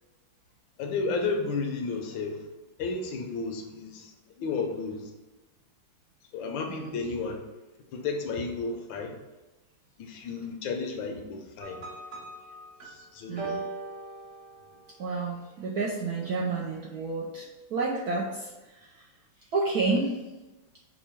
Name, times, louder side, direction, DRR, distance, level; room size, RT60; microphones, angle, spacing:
voice 1, 0.8-2.4 2.8-4.1 4.4-5.0 6.3-7.4 7.9-9.2 10.0-11.8 13.1-13.5, left 4 dB, 75° left, 4 dB, 1.3 m, -32 dB
voice 2, 6.7-7.0 13.3-13.6 15.0-18.5 19.5-20.1, right 3 dB, 70° right, -2 dB, 0.9 m, -30 dB
sound 1, 11.6-15.0, right 3 dB, 50° right, 1.0 m, -40 dB
5.4 x 2.2 x 4.3 m, 1.1 s
omnidirectional pair, 2.2 m